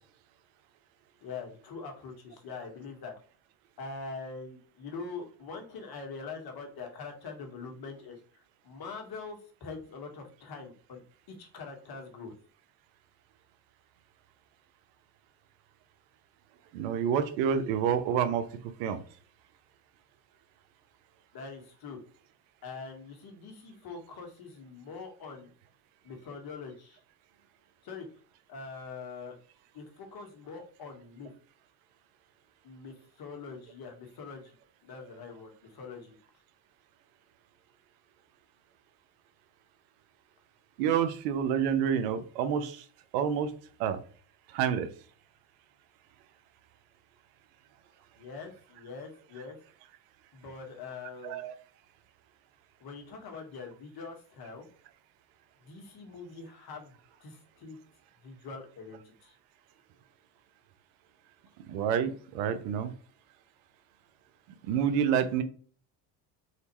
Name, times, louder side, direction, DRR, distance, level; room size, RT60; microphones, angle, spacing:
voice 1, 1.2-3.1 3.8-8.2 8.6-11.0 11.4-12.3 21.3-22.0 22.6-25.5 26.0-27.0 27.8-28.1 28.5-29.3 29.7-31.3 32.6-34.5 34.8-36.1 48.2-49.6 50.3-51.4 52.8-54.6 55.6-56.9 57.2-57.8 58.2-59.3, left 4 dB, 50° left, 4 dB, 1.6 m, -43 dB
voice 2, 16.7-18.5 18.8-19.0 40.8-42.8 43.1-43.5 43.8-44.0 44.5-44.9 51.2-51.5 61.7-62.9 64.7-65.4, right 8 dB, 75° right, 11 dB, 0.8 m, -28 dB
4.2 x 4.0 x 3.0 m, 0.44 s
supercardioid pair, 80°, 49 cm